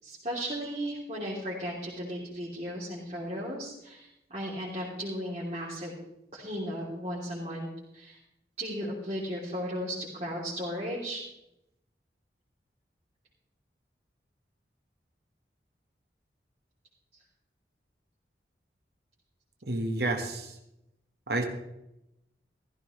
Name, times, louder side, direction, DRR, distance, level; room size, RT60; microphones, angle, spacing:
voice 1, 0.0-5.9 6.3-7.7 7.9-8.2 8.6-11.2, equal, 35° right, -7 dB, 3.4 m, -35 dB
voice 2, 19.6-20.6 21.3-21.4, right 2 dB, 65° right, 4 dB, 1.7 m, -30 dB
15.0 x 15.0 x 3.3 m, 0.85 s
head